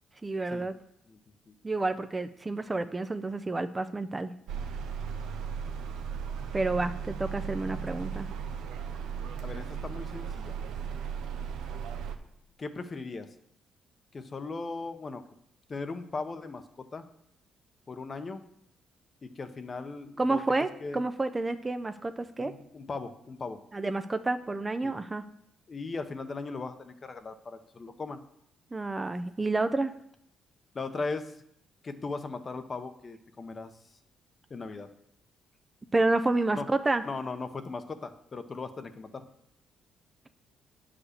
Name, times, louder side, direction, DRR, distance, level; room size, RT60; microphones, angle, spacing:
voice 1, 0.2-0.7 1.6-4.3 6.5-8.3 20.2-22.5 23.7-25.2 28.7-29.9 35.9-37.0, right 2 dB, 20° right, 10 dB, 0.5 m, -29 dB
sound 1, 4.5-12.2, right 7 dB, 90° right, 0.7 m, -36 dB
voice 2, 9.4-10.6 12.6-13.3 14.1-15.2 15.7-17.1 17.9-18.4 19.2-21.0 22.4-23.6 24.8-24.9 25.7-28.2 30.7-31.4 31.8-33.7 34.5-34.9 36.5-36.7 37.0-39.2, left 3 dB, 35° left, 9 dB, 0.8 m, -38 dB
8.5 x 5.0 x 6.5 m, 0.74 s
cardioid pair, 90°, 0 cm